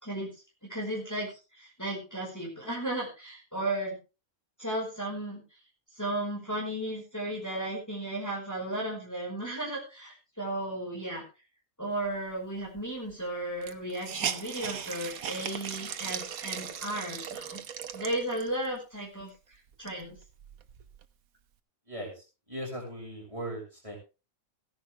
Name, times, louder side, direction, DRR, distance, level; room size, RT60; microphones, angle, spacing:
voice 1, 0.7-4.0 4.6-5.4 6.0-11.2 11.8-17.6 17.9-19.3 19.8-20.2, right 1 dB, 10° left, -3 dB, 5.0 m, -34 dB
Hiss, 12.8-12.9 13.1-13.2 13.6-18.7 19.2-19.3 19.7-21.1, right 8 dB, 85° right, 1.5 m, -38 dB
voice 2, 21.9-24.0, right 1 dB, 20° right, -2 dB, 6.4 m, -39 dB
16.5 x 10.5 x 3.5 m, 0.31 s
omnidirectional pair, 1.5 m